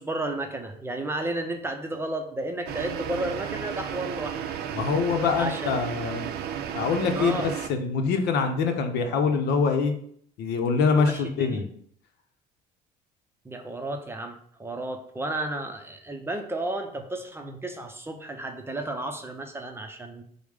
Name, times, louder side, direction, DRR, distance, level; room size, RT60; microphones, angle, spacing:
voice 1, 0.0-4.4 5.4-5.7 7.1-7.5 11.0-11.6 13.4-14.3 14.6-20.2, right 2 dB, 15° right, 4 dB, 0.6 m, -32 dB
sound 1, 2.7-7.7, right 9 dB, 70° right, 0.5 m, -33 dB
voice 2, 4.7-6.3 6.7-9.9 10.4-11.7, left 5 dB, 80° left, 6 dB, 0.7 m, -24 dB
5.0 x 2.1 x 4.9 m, 0.63 s
cardioid pair, 110°, 17 cm